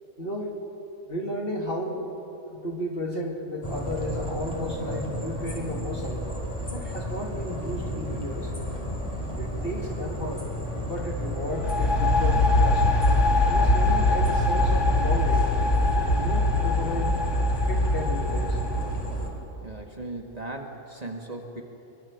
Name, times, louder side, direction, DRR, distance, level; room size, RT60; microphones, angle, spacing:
voice 1, 0.2-0.5 1.1-2.1 2.5-6.2 6.7-8.5 9.4-10.5 10.8-12.9 13.4-15.5 15.9-17.1 17.7-18.6, left 1 dB, 45° left, 1 dB, 2.9 m, -33 dB
sound 1, 3.6-19.3, equal, 25° left, 4.0 m, -32 dB
sound 2, 11.5-19.2, left 2 dB, 60° left, 2.4 m, -23 dB
voice 2, 19.6-21.6, right 2 dB, 30° right, 2 dB, 1.9 m, -37 dB
23.5 x 23.0 x 7.4 m, 3.0 s
omnidirectional pair, 1.4 m